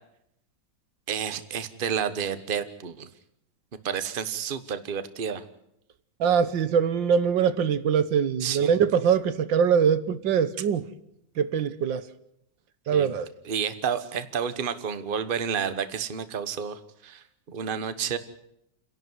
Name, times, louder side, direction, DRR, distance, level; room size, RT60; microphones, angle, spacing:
voice 1, 1.1-3.1 3.8-5.4 8.4-8.7 12.9-13.1 13.4-18.2, right 7 dB, 35° right, 1.2 m, -30 dB
voice 2, 6.2-10.9 11.4-12.0 12.9-13.3, right 7 dB, 85° right, 1.8 m, -23 dB
29.5 x 11.5 x 9.5 m
omnidirectional pair, 2.0 m